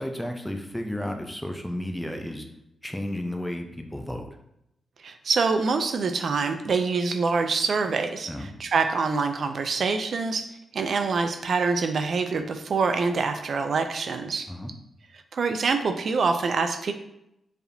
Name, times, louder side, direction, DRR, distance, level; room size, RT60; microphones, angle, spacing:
voice 1, 0.0-2.5 2.8-4.3 8.3-8.5 14.5-14.7, left 1 dB, 5° left, 4 dB, 0.5 m, -32 dB
voice 2, 5.0-14.5 15.3-16.9, right 4 dB, 60° right, 8 dB, 0.3 m, -25 dB
4.7 x 3.4 x 2.6 m, 0.83 s
cardioid pair, 95°, 0 cm